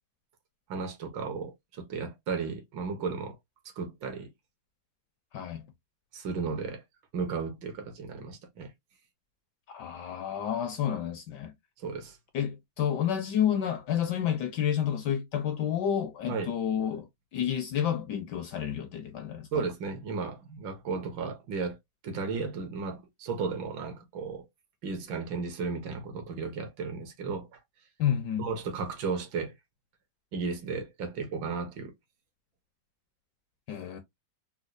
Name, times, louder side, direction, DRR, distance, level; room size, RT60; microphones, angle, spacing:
voice 1, 0.7-3.4 3.8-4.3 6.1-6.8 7.1-8.7 11.8-12.2 16.3-16.5 19.5-21.8 22.0-24.4 24.8-27.6 28.4-29.5 30.3-31.9, right 4 dB, 70° right, 1.6 m, -34 dB
voice 2, 5.3-5.7 9.7-11.5 12.3-19.7 28.0-28.5 33.7-34.0, left 9 dB, 75° left, 1.0 m, -30 dB
4.3 x 2.2 x 2.4 m
omnidirectional pair, 2.3 m